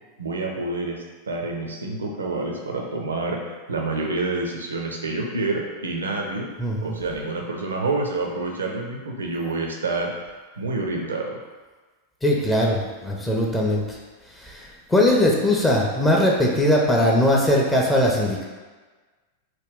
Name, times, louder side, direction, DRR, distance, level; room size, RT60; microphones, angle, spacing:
voice 1, 0.2-6.5 6.8-10.1 10.6-11.4, right 3 dB, 70° right, 0 dB, 0.4 m, -28 dB
voice 2, 6.6-6.9 12.2-14.0 14.4-18.4, left 1 dB, 10° left, -2 dB, 0.4 m, -20 dB
3.0 x 2.2 x 3.6 m, 1.3 s
figure-of-eight pair, 90°, 0 cm